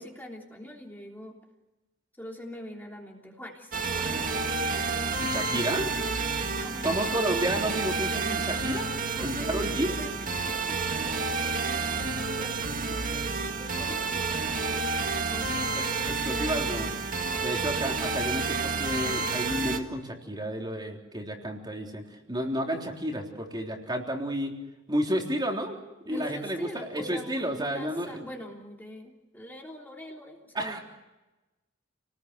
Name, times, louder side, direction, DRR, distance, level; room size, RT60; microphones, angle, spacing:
voice 1, 0.0-1.4 2.2-5.7 6.4-7.0 7.3-7.4 9.1-9.6 10.0-13.3 13.6-14.9 15.3-16.9 26.1-30.8, equal, 10° left, 0 dB, 3.3 m, -44 dB
sound 1, 3.7-19.8, right 4 dB, 45° right, 2.0 m, -30 dB
voice 2, 5.3-5.9 6.8-8.9 9.2-9.9 16.2-16.9 17.4-22.0 22.3-24.6 24.9-25.8 26.1-28.3 30.5-30.8, right 1 dB, 20° right, 1 dB, 3.7 m, -31 dB
30.0 x 20.0 x 8.1 m, 1.1 s
head